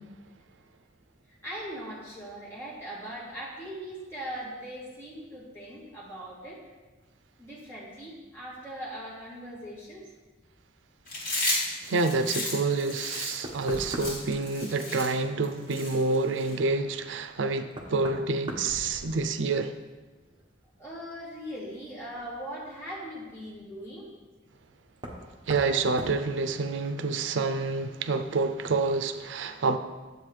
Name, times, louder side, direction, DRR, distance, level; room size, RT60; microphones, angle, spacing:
voice 1, 1.3-6.6 7.4-10.1 20.8-24.1, equal, 15° left, -8 dB, 3.0 m, -40 dB
Chewing mastication, 11.1-16.5, left 2 dB, 45° left, 3.1 m, -33 dB
voice 2, 11.9-19.7 25.5-29.8, right 3 dB, 85° right, 10 dB, 0.5 m, -28 dB
Knock, 13.4-14.4 16.8-16.9 17.7-19.5 19.9-20.4 22.1-22.2 25.0-25.2 25.5-25.7 26.0-26.2, right 1 dB, 25° right, 1.1 m, -39 dB
10.5 x 7.9 x 3.3 m, 1.2 s
head